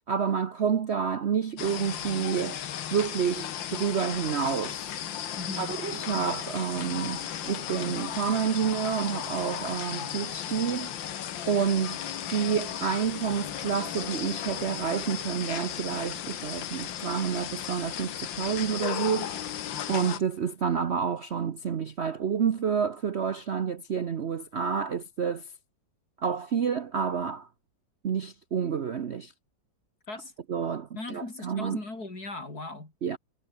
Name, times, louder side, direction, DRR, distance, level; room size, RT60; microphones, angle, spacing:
voice 1, 0.1-2.6 2.9-4.9 5.6-10.9 11.5-12.0 12.3-19.6 19.9-25.4 26.2-27.5 28.0-29.3 30.5-31.8 33.0-33.2, right 7 dB, 50° right, 0.9 m, -29 dB
sound 1, 1.6-20.2, left 10 dB, 80° left, 1.9 m, -35 dB
voice 2, 5.4-5.8 30.1-30.3 30.9-32.9, left 2 dB, 55° left, 6.0 m, -38 dB
omnidirectional pair, 2.0 m